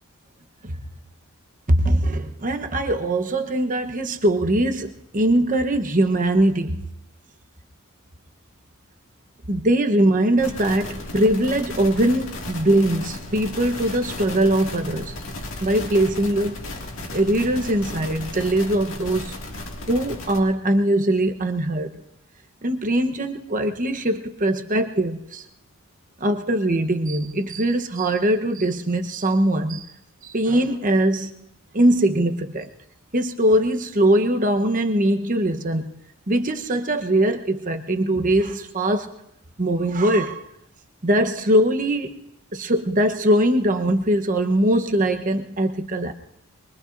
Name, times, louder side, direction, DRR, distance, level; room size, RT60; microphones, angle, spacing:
voice 1, 1.7-6.8 9.5-15.1 15.6-16.7 17.1-19.4 19.9-22.0 22.6-25.4 26.2-29.8 30.2-31.3 31.7-32.7 33.1-36.0 36.3-39.1 39.6-40.4 41.0-42.1 42.5-46.1, right 1 dB, 35° right, 6 dB, 1.0 m, -21 dB
sound 1, 10.4-20.4, left 2 dB, 65° left, 2.1 m, -35 dB
23.5 x 23.0 x 2.6 m, 0.78 s
head